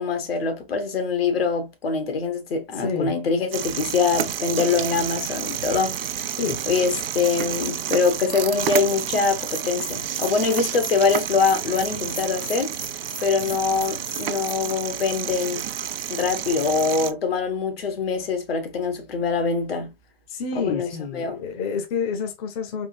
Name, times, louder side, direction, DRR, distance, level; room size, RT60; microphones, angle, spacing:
voice 1, 0.0-6.1 6.7-12.8 13.2-15.7 16.1-19.9 20.5-20.9 21.1-21.4, left 5 dB, 75° left, 1.1 m, -24 dB
voice 2, 2.7-3.2 4.7-4.8 6.4-6.6 20.3-22.9, left 6 dB, 35° left, 0.7 m, -28 dB
sound 1, 3.5-17.1, right 10 dB, 70° right, 0.5 m, -30 dB
Bell, 9.3-14.5, right 1 dB, 5° right, 0.5 m, -39 dB
3.6 x 2.4 x 2.6 m
hypercardioid pair, 130°, 30 cm